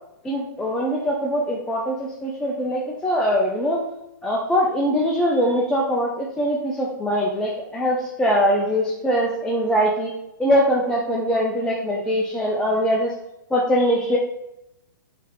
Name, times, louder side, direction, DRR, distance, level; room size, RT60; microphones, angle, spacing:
voice 1, 0.2-3.8 4.2-10.1 10.4-13.1 13.5-14.2, equal, 5° left, -3 dB, 0.4 m, -22 dB
3.4 x 2.7 x 3.7 m, 0.88 s
hypercardioid pair, 130°, 11 cm